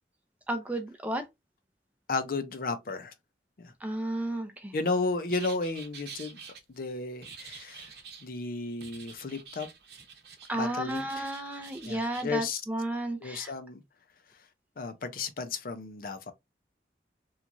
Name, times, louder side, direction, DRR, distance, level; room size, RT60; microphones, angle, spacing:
voice 1, 0.5-1.2 3.8-4.7 10.5-13.5, right 1 dB, 10° right, 0.4 m, -33 dB
voice 2, 2.1-3.1 3.6-3.7 4.7-6.4 6.7-7.9 8.2-9.7 10.5-11.3 11.9-12.6 13.2-13.8 14.8-16.3, left 3 dB, 50° left, 0.5 m, -33 dB
sound 1, 5.3-6.6 7.2-8.3 8.8-10.5 10.8-12.3, right 6 dB, 70° right, 0.8 m, -47 dB
3.0 x 2.4 x 2.5 m
head